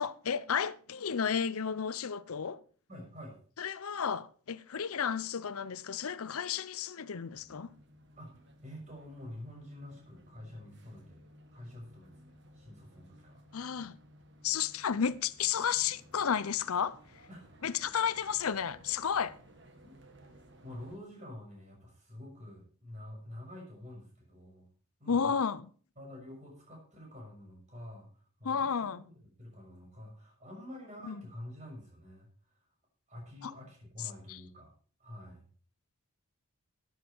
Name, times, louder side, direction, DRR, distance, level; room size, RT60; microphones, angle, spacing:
voice 1, 0.0-2.6 3.6-7.7 13.5-14.0 14.4-17.0 17.6-19.4 25.1-25.7 28.4-29.0 31.0-31.2 33.4-33.5 34.3-34.4, left 7 dB, 80° left, 0.6 m, -32 dB
voice 2, 2.9-3.4 8.2-11.2 11.5-13.4 17.3-17.9 19.8-19.9 20.6-24.7 25.0-25.3 26.0-32.6 33.1-34.7 35.0-35.4, left 1 dB, 30° right, 6.4 m, -48 dB
sound 1, 7.3-21.0, equal, 50° right, 1.7 m, -58 dB
13.0 x 9.8 x 4.6 m
head